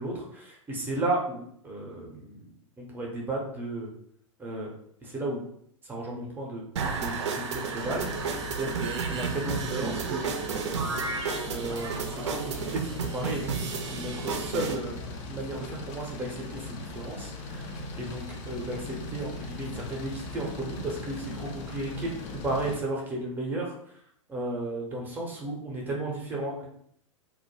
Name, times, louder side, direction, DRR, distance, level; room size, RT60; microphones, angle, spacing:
voice 1, 0.0-2.5 2.8-3.9 4.4-4.7 5.0-5.4 5.9-8.1 8.6-10.2 11.5-14.9 15.3-22.1 22.4-23.7 24.3-26.6, right 2 dB, 10° right, -2 dB, 0.6 m, -34 dB
sound 1, 6.8-14.8, right 5 dB, 60° right, 0.4 m, -32 dB
sound 2, 7.8-22.8, left 2 dB, 35° left, 0.4 m, -39 dB
2.2 x 2.1 x 3.0 m, 0.67 s
figure-of-eight pair, 100°, 17 cm